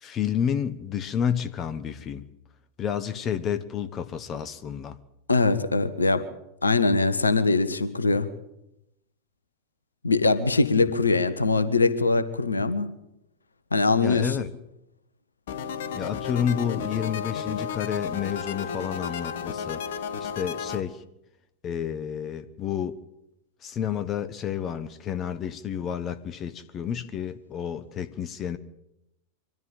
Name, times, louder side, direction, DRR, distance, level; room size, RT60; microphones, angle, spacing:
voice 1, 0.0-2.3 2.8-5.0 14.0-14.5 15.9-19.8 20.2-21.0 21.6-23.0 23.6-28.6, left 8 dB, 30° left, 1.2 m, -30 dB
voice 2, 5.3-6.3 6.6-8.3 10.0-12.9 13.7-14.5, left 3 dB, 75° left, 1.5 m, -22 dB
sound 1, 15.5-20.8, left 7 dB, 55° left, 1.3 m, -33 dB
24.0 x 14.5 x 9.1 m
figure-of-eight pair, 90°, 0 cm